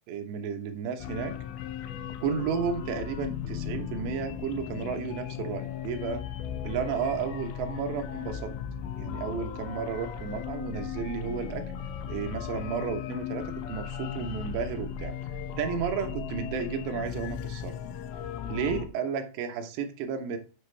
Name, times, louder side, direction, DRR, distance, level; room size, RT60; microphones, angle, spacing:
voice 1, 0.1-1.4 2.2-6.3 6.7-8.5 9.0-11.6 12.1-15.1 15.6-17.7 18.5-20.4, right 6 dB, 85° right, 6 dB, 3.4 m, -32 dB
sound 1, 1.0-18.9, left 8 dB, 90° left, 3.0 m, -37 dB
7.3 x 7.2 x 3.3 m, 0.35 s
omnidirectional pair, 5.0 m